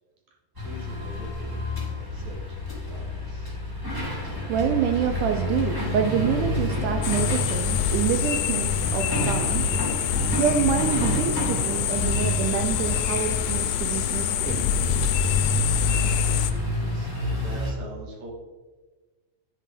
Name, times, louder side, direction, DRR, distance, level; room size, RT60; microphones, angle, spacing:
sound 1, 0.5-17.7, left 2 dB, 10° right, 1.3 m, -28 dB
voice 1, 0.6-1.6 1.9-2.6 2.9-3.6 16.7-18.3, right 1 dB, 60° right, -2 dB, 2.8 m, -43 dB
voice 2, 4.5-9.6 10.3-14.6, right 8 dB, 80° right, 6 dB, 1.8 m, -27 dB
sound 2, 7.0-16.5, left 10 dB, 80° left, 2.1 m, -27 dB
10.5 x 4.4 x 4.9 m, 1.3 s
omnidirectional pair, 4.0 m